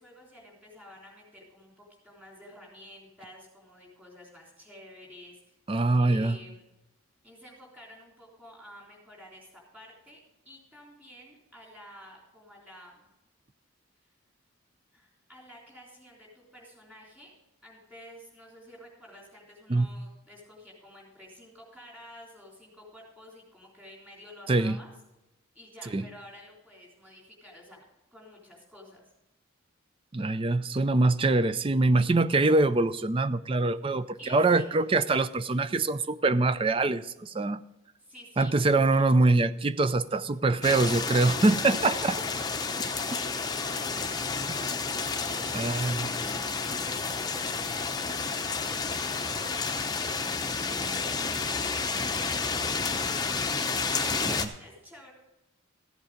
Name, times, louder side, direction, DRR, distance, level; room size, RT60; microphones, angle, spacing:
voice 1, 0.0-5.6 6.0-6.6 7.2-10.2 10.4-13.1 14.9-17.3 17.6-24.9 25.5-27.8 28.1-29.0 34.2-34.8 38.0-39.1 41.5-41.9 42.2-44.4 45.1-53.2 53.9-55.1, left 1 dB, 10° right, -3 dB, 3.6 m, -51 dB
voice 2, 5.7-6.4 19.7-19.9 24.5-24.8 25.9-26.0 30.1-37.6 38.4-42.2 45.5-46.1 54.2-54.5, right 2 dB, 25° right, 13 dB, 0.4 m, -24 dB
sound 1, 40.6-54.4, left 4 dB, 20° left, 0.7 m, -30 dB
15.0 x 8.1 x 5.1 m, 0.94 s
head